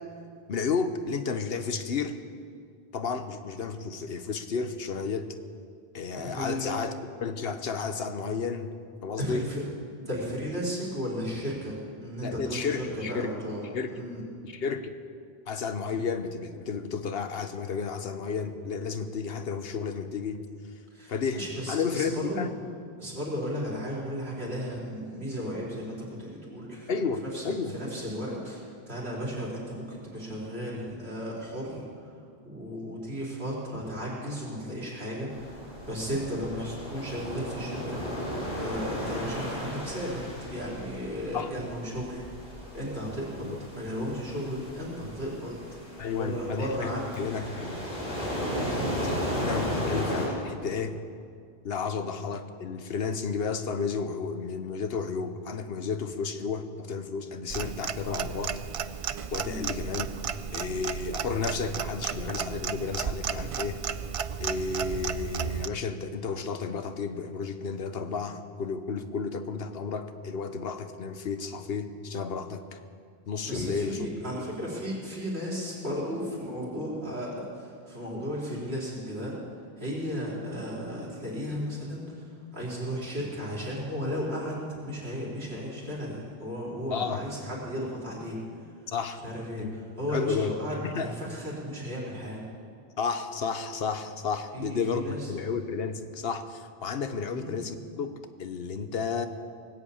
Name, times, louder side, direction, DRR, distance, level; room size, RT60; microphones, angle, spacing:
voice 1, 0.5-2.2 2.9-5.3 5.9-6.9 7.2-8.7 9.0-9.5 12.2-13.4 13.7-14.0 14.4-14.9 15.5-20.4 21.1-21.4 21.7-22.6 26.9-27.8 41.3-41.5 43.4-43.6 46.0-46.9 47.2-47.9 49.0-51.0 51.6-58.6 59.3-60.1 60.5-63.8 64.4-72.6 73.3-74.0 74.3-74.5 86.9-87.3 88.9-89.2 89.6-89.8 90.1-90.6 90.8-91.1 93.0-99.3, left 5 dB, 70° left, 9 dB, 1.1 m, -32 dB
voice 2, 6.1-6.7 9.2-9.6 10.0-14.2 20.9-22.5 23.0-26.9 27.3-27.4 27.7-32.1 32.4-35.5 35.8-38.0 38.5-40.2 40.5-43.5 43.7-45.6 46.0-47.2 59.3-59.7 73.4-79.4 79.8-88.4 89.2-92.4 94.5-95.3 97.2-97.6, equal, 80° right, -5 dB, 4.3 m, -35 dB
sound 1, 35.3-50.3, equal, 55° left, 3.9 m, -35 dB
Clock, 57.5-65.7, right 7 dB, 55° right, 0.4 m, -33 dB
19.0 x 8.3 x 8.6 m, 2.2 s
omnidirectional pair, 1.0 m